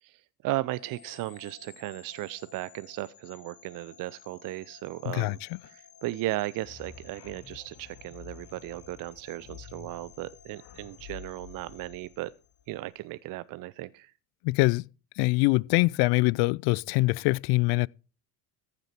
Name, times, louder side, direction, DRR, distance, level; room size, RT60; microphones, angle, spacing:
voice 1, 0.0-5.4 5.7-12.3 12.7-14.1, right 17 dB, 45° right, 0.6 m, -36 dB
sound 1, 0.7-12.9, left 8 dB, 40° left, 1.6 m, -55 dB
voice 2, 5.1-5.6 14.4-14.9 15.2-17.9, left 24 dB, 55° left, 0.5 m, -24 dB
sound 2, 6.6-12.8, left 7 dB, 75° left, 2.5 m, -49 dB
14.5 x 7.8 x 4.4 m
hypercardioid pair, 80°, 46 cm